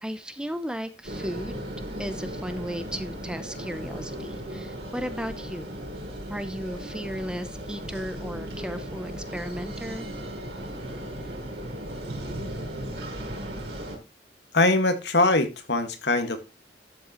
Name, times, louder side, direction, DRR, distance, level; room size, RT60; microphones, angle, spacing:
voice 1, 0.0-1.7 2.0-5.7 6.3-10.1, equal, 5° right, 0.7 m, -35 dB
sound 1, 1.0-14.0, right 1 dB, 65° right, 4.8 m, -36 dB
voice 2, 14.5-16.4, left 2 dB, 70° left, 1.9 m, -22 dB
12.5 x 7.7 x 3.1 m
head